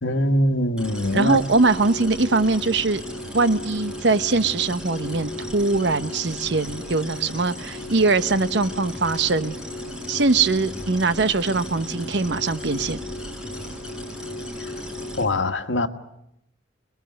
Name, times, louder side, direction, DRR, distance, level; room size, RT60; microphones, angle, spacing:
voice 1, 0.0-1.4 15.2-15.9, left 1 dB, 85° left, 1.6 m, -22 dB
sound 1, 0.8-15.2, left 1 dB, 5° right, 6.7 m, -35 dB
voice 2, 1.1-3.0 3.3-9.6 10.1-13.0, right 3 dB, 65° right, 1.0 m, -22 dB
28.5 x 21.0 x 7.9 m
head